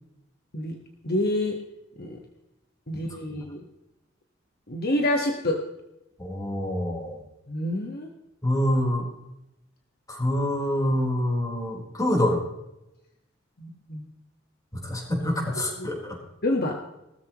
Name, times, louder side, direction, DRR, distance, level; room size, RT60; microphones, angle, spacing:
voice 1, 1.0-1.6 2.0-2.2 2.9-3.6 4.7-5.6 7.5-8.1 13.6-14.1 15.6-15.9 16.4-16.8, left 1 dB, 50° left, 2 dB, 1.6 m, -27 dB
voice 2, 6.2-7.2 8.4-9.1 10.1-12.4 14.7-16.2, left 1 dB, 20° left, -1 dB, 4.3 m, -26 dB
18.5 x 14.0 x 3.1 m, 0.90 s
head